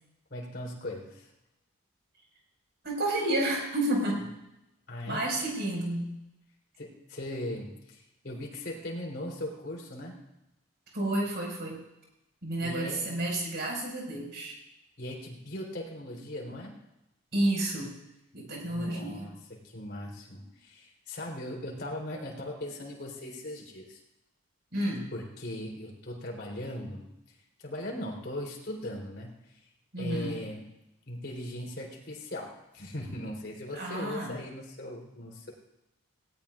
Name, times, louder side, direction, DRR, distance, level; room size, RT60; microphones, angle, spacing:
voice 1, 0.3-1.3 4.9-5.2 6.8-10.2 12.6-13.1 15.0-16.7 18.6-24.0 25.1-27.1 27.6-29.6 30.0-30.6 31.1-35.5, left 1 dB, 50° left, -2 dB, 3.7 m, -39 dB
voice 2, 2.8-4.2 5.0-6.1 10.9-11.8 12.4-14.6 17.3-17.9 18.3-19.3 24.7-25.1 29.9-30.4 33.7-34.4, right 1 dB, 50° right, -1 dB, 5.3 m, -30 dB
19.0 x 18.0 x 2.5 m, 0.90 s
head